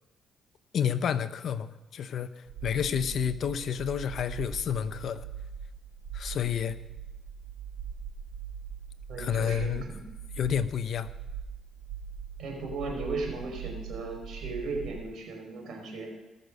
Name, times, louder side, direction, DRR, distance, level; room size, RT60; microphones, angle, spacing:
voice 1, 0.7-5.3 6.1-6.8 9.2-9.9 10.4-11.1, left 8 dB, 65° left, 13 dB, 0.7 m, -30 dB
sound 1, 2.5-15.0, right 7 dB, 90° right, 1.2 m, -41 dB
voice 2, 2.7-3.0 9.1-10.0 12.4-16.1, right 3 dB, 70° right, 1 dB, 4.9 m, -37 dB
18.5 x 6.8 x 6.6 m, 1.0 s
cardioid pair, 90°, 0 cm